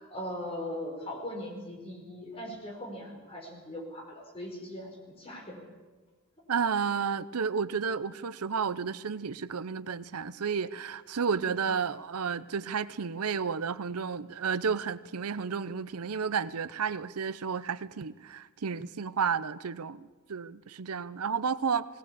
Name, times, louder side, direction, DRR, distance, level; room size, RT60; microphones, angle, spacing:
voice 1, 0.0-5.6 11.4-11.6, left 1 dB, 25° left, 1 dB, 5.1 m, -40 dB
voice 2, 6.5-21.9, right 6 dB, 90° right, 16 dB, 0.7 m, -32 dB
19.0 x 18.0 x 8.4 m, 1.3 s
head